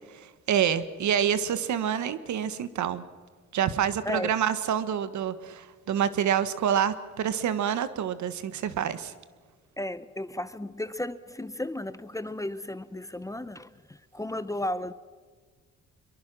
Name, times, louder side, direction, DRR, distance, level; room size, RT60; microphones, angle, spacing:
voice 1, 0.1-3.0 3.5-9.1, right 9 dB, 70° right, 1.4 m, -27 dB
voice 2, 9.8-14.9, left 1 dB, 10° left, 0.9 m, -34 dB
24.0 x 23.0 x 6.2 m
cardioid pair, 90°, 30 cm